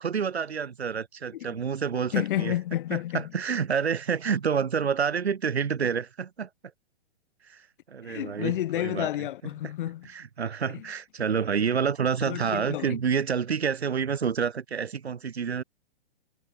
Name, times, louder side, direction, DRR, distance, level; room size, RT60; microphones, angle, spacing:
voice 1, 0.0-2.5 2.9-6.5 7.5-7.6 7.9-9.1 10.1-15.6, right 6 dB, 80° right, 2.2 m, -28 dB
voice 2, 1.9-3.3 8.0-10.1 10.7-10.9 11.4-11.5 12.2-13.0, left 13 dB, 55° left, 2.3 m, -31 dB
hypercardioid pair, 120°, 31 cm